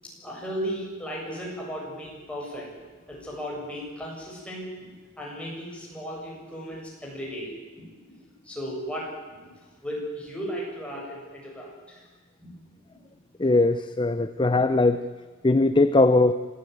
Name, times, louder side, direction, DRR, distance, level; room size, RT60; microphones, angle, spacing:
voice 1, 0.0-2.7 3.1-7.9 8.4-9.5 9.8-12.0 12.4-12.6 12.9-13.0, equal, 5° left, -3 dB, 7.5 m, -36 dB
voice 2, 13.4-15.0 15.4-16.3, left 2 dB, 25° left, 11 dB, 0.7 m, -20 dB
26.5 x 15.5 x 9.5 m, 1.4 s
head